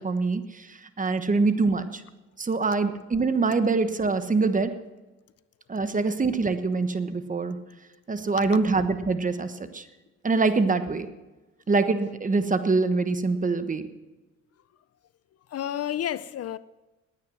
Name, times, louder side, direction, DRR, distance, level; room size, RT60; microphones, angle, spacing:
voice 1, 0.0-2.0 2.4-4.7 5.7-7.6 8.1-9.8 10.2-11.1 11.7-13.9, right 3 dB, 25° right, 1.2 m, -24 dB
voice 2, 15.5-16.6, left 11 dB, 55° left, 0.5 m, -30 dB
19.0 x 9.6 x 6.2 m
cardioid pair, 90°, 30 cm